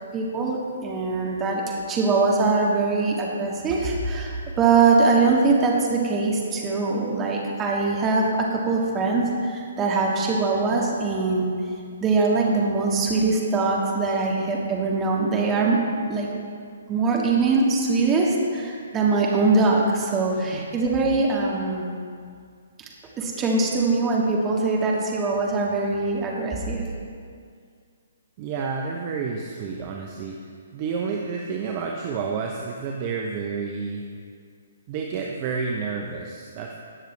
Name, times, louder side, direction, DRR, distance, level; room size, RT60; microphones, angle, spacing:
voice 1, 0.1-11.5 12.0-15.8 16.1-16.3 16.9-21.9 23.2-26.9, right 3 dB, 20° right, -2 dB, 1.9 m, -22 dB
voice 2, 20.3-20.7 28.4-34.1 34.9-36.7, right 5 dB, 35° right, 0 dB, 0.9 m, -30 dB
19.0 x 6.6 x 3.3 m, 2.2 s
figure-of-eight pair, 130°, 0 cm